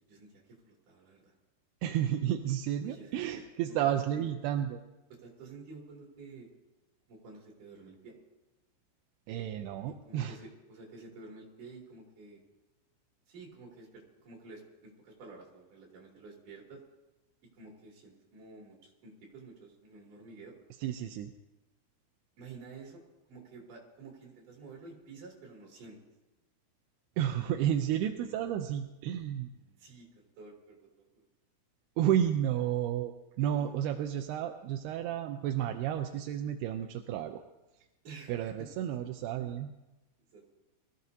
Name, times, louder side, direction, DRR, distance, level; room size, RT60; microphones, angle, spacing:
voice 1, 0.1-1.3 2.8-3.7 4.1-4.3 5.1-6.5 7.1-8.2 9.8-12.4 13.3-16.8 17.5-20.6 22.4-23.0 23.3-26.0 29.8-31.3 33.5-33.7 33.9-34.0 38.0-39.0 39.4-39.5 40.3-40.5, right 3 dB, 55° right, -2 dB, 4.1 m, -51 dB
voice 2, 1.8-4.8 9.3-10.4 20.8-21.3 27.2-29.5 32.0-37.4 38.3-39.7, right 10 dB, 85° right, 5 dB, 2.7 m, -31 dB
23.0 x 14.5 x 2.7 m, 1.0 s
omnidirectional pair, 4.6 m